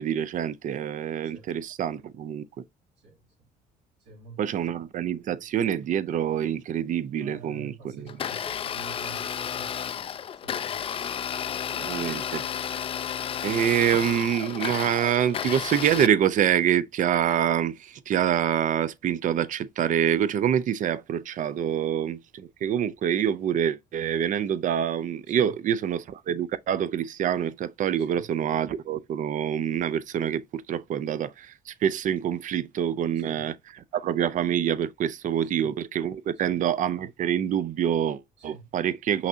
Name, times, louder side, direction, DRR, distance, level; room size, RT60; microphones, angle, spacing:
voice 1, 0.0-2.4 4.4-8.2 11.8-12.4 13.4-33.5 33.9-39.3, right 9 dB, 50° right, 0.5 m, -26 dB
voice 2, 3.0-3.5 4.0-4.7 7.2-9.7 10.4-10.7 25.3-25.5 28.0-28.3 33.1-33.6 35.5-35.7 36.4-36.6 38.4-38.7, right 5 dB, 85° right, 2.6 m, -47 dB
Domestic sounds home sounds, 8.1-16.1, left 8 dB, 35° left, 0.3 m, -32 dB
5.7 x 2.8 x 2.7 m
cardioid pair, 110°, 17 cm